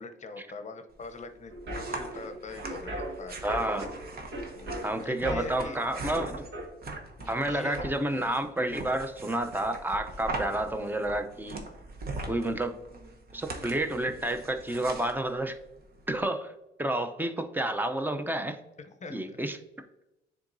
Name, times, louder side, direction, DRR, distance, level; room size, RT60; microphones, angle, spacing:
voice 1, 0.0-3.4 4.5-5.8 7.2-7.9 19.0-19.2, left 3 dB, 35° left, 8 dB, 0.7 m, -42 dB
sound 1, 0.9-16.2, right 2 dB, 50° right, 1.0 m, -41 dB
sound 2, 1.5-6.7, right 1 dB, 70° right, 1.6 m, -39 dB
voice 2, 3.4-3.9 4.8-6.4 7.3-11.6 12.3-12.8 13.3-15.5 16.1-16.5 16.8-18.6 19.1-19.6, right 1 dB, 10° right, 7 dB, 0.6 m, -30 dB
9.5 x 3.7 x 2.6 m, 0.96 s
cardioid pair, 90°, 20 cm